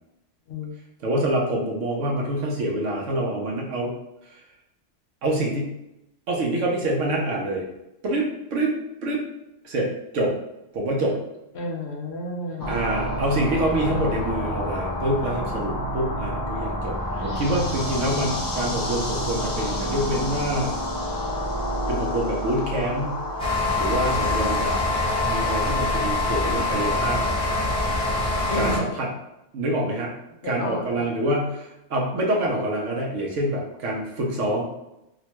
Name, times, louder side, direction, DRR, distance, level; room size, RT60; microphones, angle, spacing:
voice 1, 1.0-3.9 4.2-4.4 5.2-5.7 6.3-7.6 8.0-8.8 9.0-9.2 9.6-10.3 10.7-11.2 12.7-20.7 21.9-23.2 23.8-24.8 25.3-27.3 28.5-29.1 29.5-30.1 30.4-34.6, right 1 dB, 80° right, -1 dB, 1.0 m, -26 dB
voice 2, 11.5-12.8 17.1-17.9 28.5-29.0 30.4-31.1, left 1 dB, 65° left, 0 dB, 0.9 m, -33 dB
sound 1, 12.6-25.7, left 1 dB, 35° left, 0.3 m, -29 dB
sound 2, 23.4-28.8, left 2 dB, 5° left, 0.7 m, -24 dB
3.0 x 2.1 x 2.9 m, 0.88 s
omnidirectional pair, 1.3 m